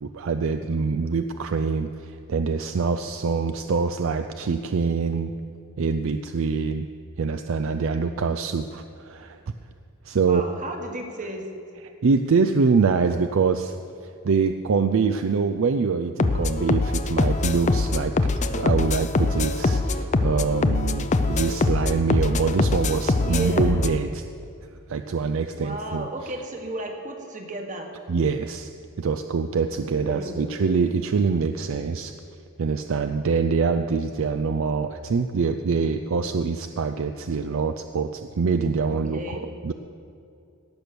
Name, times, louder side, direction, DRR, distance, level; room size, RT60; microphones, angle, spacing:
voice 1, 0.0-5.3 5.8-6.9 7.2-9.4 10.1-10.5 12.0-13.8 14.0-18.1 18.5-24.2 24.9-26.1 28.1-28.7 29.0-32.1 32.6-39.7, right 5 dB, 65° right, 8 dB, 0.4 m, -24 dB
voice 2, 3.0-3.4 10.2-11.5 23.2-23.9 25.5-27.9 29.7-30.6 38.9-39.5, right 1 dB, 35° right, 3 dB, 1.5 m, -34 dB
sound 1, 16.2-24.0, left 3 dB, 35° left, 0.5 m, -23 dB
17.5 x 6.1 x 6.9 m, 2.6 s
head